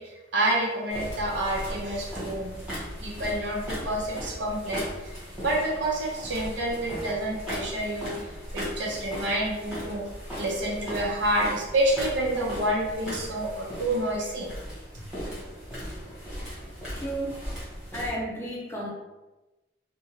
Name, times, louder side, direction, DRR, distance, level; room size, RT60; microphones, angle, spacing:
voice 1, 0.0-2.5 3.0-8.1 8.5-10.0 10.4-14.5 14.9-15.0, right 1 dB, 85° right, -3 dB, 0.7 m, -28 dB
sound 1, 0.9-18.1, equal, 5° right, 1.2 m, -38 dB
voice 2, 16.9-17.4 17.9-18.9, right 1 dB, 15° left, -4 dB, 0.5 m, -32 dB
2.5 x 2.2 x 3.1 m, 1.1 s
head